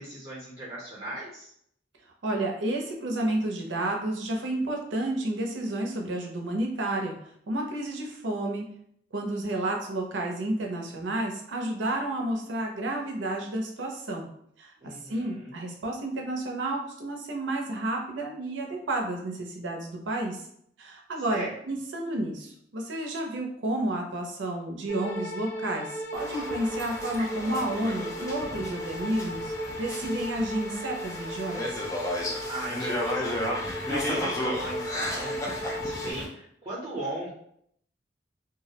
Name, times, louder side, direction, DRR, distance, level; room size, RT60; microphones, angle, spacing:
voice 1, 0.0-1.5 14.8-15.5 21.3-21.5 32.5-33.5 33.8-35.4 35.6-37.3, right 1 dB, 35° right, -7 dB, 0.7 m, -38 dB
voice 2, 2.2-7.1 7.5-8.6 9.1-14.3 14.6-20.4 20.8-31.8, right 1 dB, 90° right, 1 dB, 0.5 m, -31 dB
sound 1, 24.9-36.1, left 1 dB, 75° left, 0.5 m, -36 dB
sound 2, 26.1-36.3, left 1 dB, 15° left, 0.4 m, -34 dB
2.3 x 2.0 x 2.8 m, 0.69 s
head